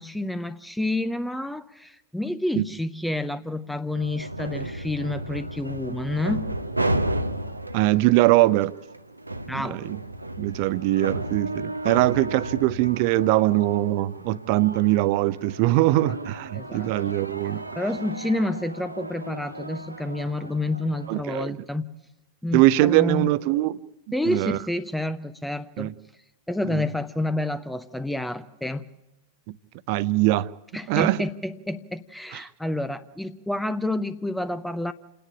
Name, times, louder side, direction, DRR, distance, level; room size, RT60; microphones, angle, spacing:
voice 1, 0.0-6.5 9.5-9.8 16.5-16.9 17.8-21.9 22.4-23.3 24.1-25.9 26.5-28.9 30.7-34.9, left 1 dB, 5° left, 0.7 m, -29 dB
sound 1, 3.9-21.2, right 1 dB, 85° right, 0.8 m, -33 dB
voice 2, 7.7-8.7 9.5-10.0 10.4-17.6 21.1-21.6 22.5-23.8 24.3-24.6 25.8-25.9 26.7-26.8 29.5-29.6 29.9-30.5 30.9-31.2 32.3-32.4, right 17 dB, 45° right, 0.6 m, -22 dB
28.0 x 10.0 x 10.0 m
figure-of-eight pair, 90°, 0 cm